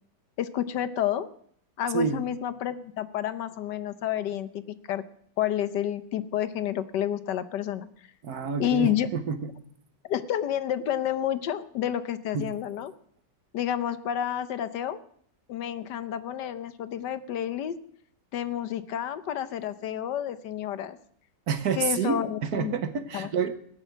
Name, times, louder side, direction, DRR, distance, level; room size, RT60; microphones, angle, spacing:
voice 1, 0.4-1.3 1.8-5.0 5.4-7.9 8.6-9.1 10.0-12.9 13.5-15.0 15.5-17.8 18.3-21.0 21.8-22.7 23.1-23.3, left 10 dB, 75° left, 12 dB, 1.4 m, -30 dB
voice 2, 8.2-9.5 12.3-12.5 21.5-23.6, right 6 dB, 60° right, 10 dB, 1.5 m, -28 dB
18.5 x 7.1 x 9.1 m, 0.64 s
omnidirectional pair, 1.9 m